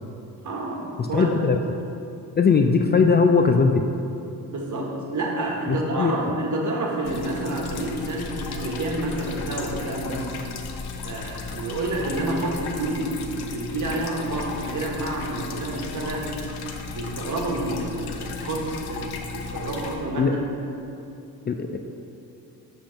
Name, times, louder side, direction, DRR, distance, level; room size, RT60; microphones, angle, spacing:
voice 1, 0.4-1.3 4.5-10.3 11.0-13.2 13.5-16.3 16.9-19.0 19.3-20.4, right 2 dB, 50° right, -1 dB, 1.5 m, -29 dB
voice 2, 1.0-1.6 2.4-3.8 5.7-6.2 20.2-20.4 21.5-21.8, left 5 dB, 30° left, 4 dB, 0.4 m, -19 dB
sound 1, 7.0-20.0, left 4 dB, 80° left, 0.7 m, -35 dB
7.5 x 3.6 x 5.8 m, 2.7 s
cardioid pair, 70°, 38 cm